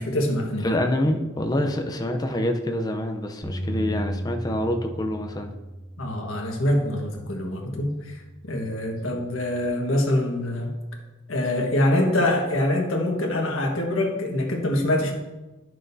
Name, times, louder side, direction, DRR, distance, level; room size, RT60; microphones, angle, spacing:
voice 1, 0.0-0.7 6.0-8.2 8.5-10.7 11.3-15.1, left 1 dB, 75° left, 1 dB, 1.4 m, -24 dB
voice 2, 0.6-5.5, left 1 dB, 20° left, 4 dB, 0.6 m, -26 dB
Bass guitar, 3.4-9.7, right 1 dB, ahead, 1.5 m, -37 dB
11.0 x 6.3 x 2.7 m, 1.1 s
head